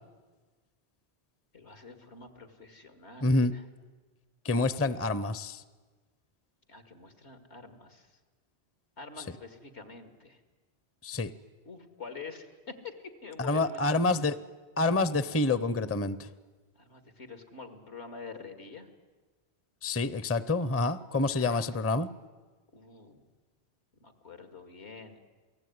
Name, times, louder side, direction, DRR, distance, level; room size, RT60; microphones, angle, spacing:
voice 1, 1.5-3.6 6.7-8.2 9.0-10.4 11.7-13.8 14.1-14.2 16.7-18.9 21.4-21.7 22.7-23.2 24.0-25.2, left 4 dB, 75° left, 9 dB, 2.6 m, -46 dB
voice 2, 3.2-3.5 4.4-5.6 11.0-11.3 13.4-14.4 14.8-16.3 19.8-22.1, left 2 dB, 15° left, 16 dB, 0.6 m, -27 dB
29.0 x 18.5 x 9.5 m, 1.3 s
omnidirectional pair, 1.1 m